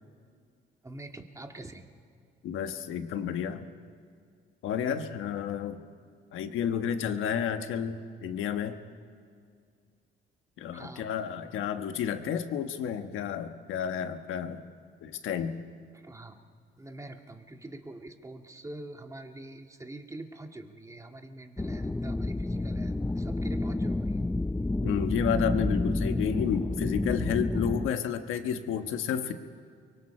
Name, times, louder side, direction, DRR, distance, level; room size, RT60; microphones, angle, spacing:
voice 1, 0.8-1.9 10.7-11.1 15.9-16.4 16.8-24.2, right 2 dB, 15° right, 4 dB, 1.9 m, -45 dB
voice 2, 2.4-3.6 4.6-5.8 6.3-8.8 10.6-14.6 15.0-15.6 24.8-29.3, left 8 dB, 85° left, 8 dB, 1.3 m, -31 dB
sound 1, 21.6-27.9, left 2 dB, 10° left, 0.5 m, -29 dB
30.0 x 23.5 x 4.4 m, 2.2 s
cardioid pair, 90°, 20 cm